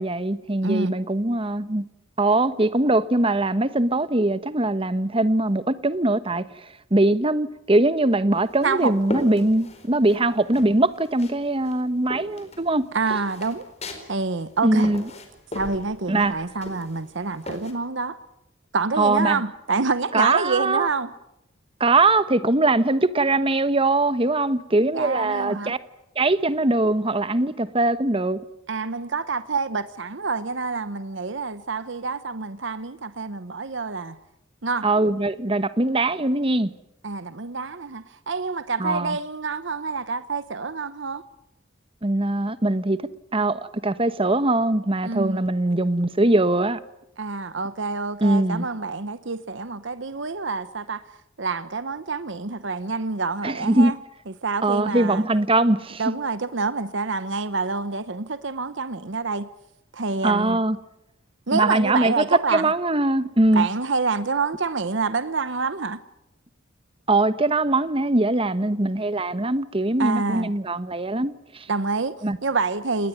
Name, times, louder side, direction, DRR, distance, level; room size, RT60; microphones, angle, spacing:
voice 1, 0.0-1.8 2.2-6.4 6.9-12.8 14.6-15.0 16.1-16.3 19.0-19.4 20.1-20.9 21.8-25.8 26.2-28.4 34.8-36.7 38.8-39.2 42.0-43.0 43.3-46.8 48.2-48.7 53.4-53.9 54.6-56.0 60.2-60.8 61.5-62.2 62.5-63.7 67.1-71.7 72.2-72.4, right 2 dB, 25° right, 1.2 m, -21 dB
voice 2, 0.6-0.9 8.6-8.9 12.9-13.7 14.1-14.9 15.5-18.2 18.7-21.1 24.9-25.7 28.7-34.2 34.6-34.9 37.0-41.2 45.0-45.5 47.2-51.0 51.4-54.0 54.4-55.3 56.0-59.5 59.9-60.6 61.5-62.7 63.5-66.0 70.0-70.5 71.7-72.2 72.4-73.1, right 4 dB, 60° right, 1.0 m, -27 dB
sound 1, 8.3-10.2 10.5-11.4 11.6-17.7, left 1 dB, 35° left, 4.4 m, -37 dB
29.5 x 20.0 x 9.4 m
head